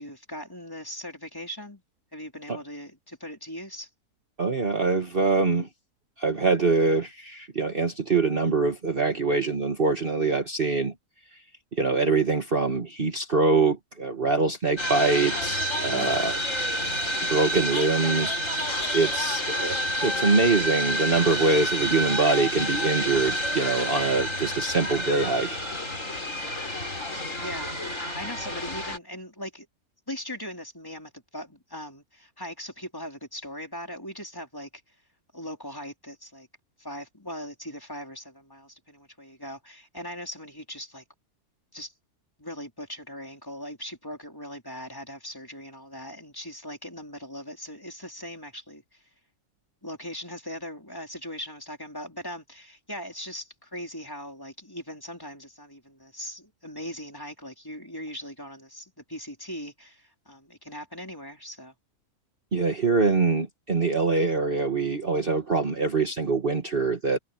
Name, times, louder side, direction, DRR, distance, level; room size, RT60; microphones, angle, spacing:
voice 1, 0.0-1.8 2.1-3.9 15.9-16.2 27.1-27.7 28.1-29.7 30.1-34.7 35.3-36.5 36.8-41.0 41.7-41.9 42.4-49.0 49.8-61.7, equal, 15° left, 4.4 m, -39 dB
voice 2, 4.4-5.7 6.2-10.9 11.7-16.4 17.3-18.4 18.9-25.5 62.5-67.2, right 3 dB, 35° right, 1.8 m, -24 dB
sound 1, 14.8-29.0, equal, 50° left, 6.4 m, -29 dB
omnidirectional pair, 1.6 m